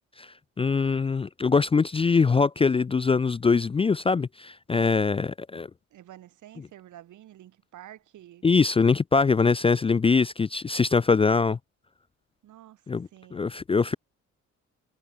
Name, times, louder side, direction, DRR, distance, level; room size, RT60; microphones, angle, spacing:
voice 1, 0.6-5.7 8.4-11.6 12.9-13.9, left 4 dB, 20° left, 0.4 m, -23 dB
voice 2, 5.9-8.5 12.4-12.9 13.1-13.5, right 13 dB, 75° right, 4.6 m, -49 dB
cardioid pair, 90°, 30 cm